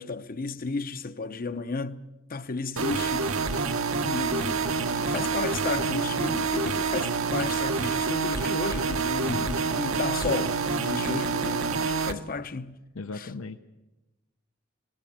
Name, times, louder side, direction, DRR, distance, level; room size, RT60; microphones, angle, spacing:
voice 1, 0.0-3.5 4.0-12.8 13.1-13.3, left 3 dB, 45° left, 0.8 m, -33 dB
sound 1, 2.8-12.1, right 4 dB, 70° right, 1.1 m, -27 dB
voice 2, 13.0-13.6, left 3 dB, 75° left, 0.8 m, -38 dB
19.5 x 18.0 x 8.8 m
head